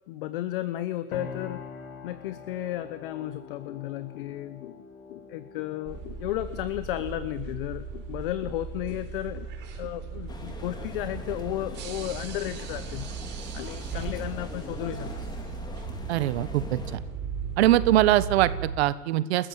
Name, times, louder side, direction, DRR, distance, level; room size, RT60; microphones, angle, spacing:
voice 1, 0.1-1.6 2.0-4.8 5.1-9.5 9.8-13.1 13.5-15.1, left 14 dB, 35° left, 14 dB, 0.9 m, -33 dB
sound 1, 1.1-10.8, left 5 dB, 65° left, 5.0 m, -46 dB
sound 2, 5.9-18.8, right 6 dB, 20° right, 3.4 m, -37 dB
sound 3, 10.3-17.0, left 3 dB, 10° left, 2.2 m, -43 dB
voice 2, 16.1-17.0 17.6-19.5, right 14 dB, 45° right, 15 dB, 1.4 m, -23 dB
28.5 x 14.0 x 8.4 m, 1.2 s
hypercardioid pair, 160°, 47 cm